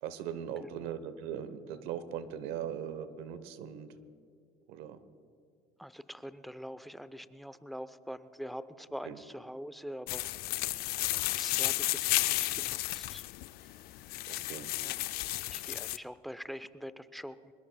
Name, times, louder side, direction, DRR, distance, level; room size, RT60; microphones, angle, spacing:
voice 1, 0.0-3.9 4.7-5.0 9.0-9.2 14.3-14.7, right 9 dB, 85° right, 13 dB, 1.0 m, -39 dB
voice 2, 5.8-10.2 11.3-13.2 14.8-15.0 15.5-17.5, equal, ahead, 14 dB, 0.6 m, -44 dB
sound 1, 10.1-16.0, left 17 dB, 70° left, 0.5 m, -33 dB
23.5 x 21.5 x 2.3 m, 2.6 s
cardioid pair, 100°, 16 cm